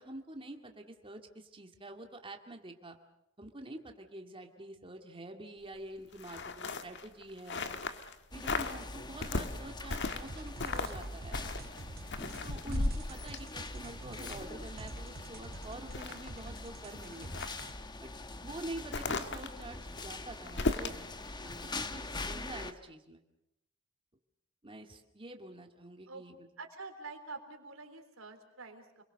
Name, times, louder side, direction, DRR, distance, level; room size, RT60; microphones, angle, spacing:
voice 1, 0.0-2.9 3.4-7.7 8.3-11.4 12.4-17.3 18.0-18.1 18.4-21.0 21.4-23.2 24.6-26.5, right 1 dB, 25° right, 4 dB, 2.2 m, -47 dB
sound 1, 6.1-8.1 8.4-8.8 9.2-10.3 10.6-11.0 11.3-14.6 15.1-15.2 15.6-16.7 17.2-17.7 18.9-21.0 21.5-21.6, left 3 dB, 60° left, 1.6 m, -36 dB
sound 2, 8.3-22.7, left 2 dB, 20° left, 1.1 m, -44 dB
sound 3, 9.9-17.7, right 2 dB, 50° right, 1.0 m, -49 dB
voice 2, 26.6-29.0, right 3 dB, 85° right, 5 dB, 3.6 m, -47 dB
29.5 x 22.0 x 6.6 m, 0.85 s
head